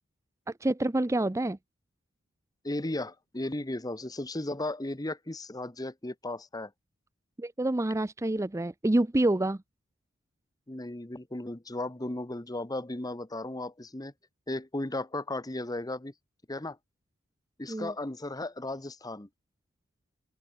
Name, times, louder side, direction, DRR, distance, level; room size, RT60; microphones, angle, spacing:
voice 1, 0.6-1.6 7.4-9.6 17.7-17.9, right 1 dB, 15° right, 0.5 m, -27 dB
voice 2, 2.6-6.7 10.7-14.1 14.5-16.1 16.5-16.8 17.6-19.3, left 2 dB, 20° left, 1.0 m, -35 dB
open air
head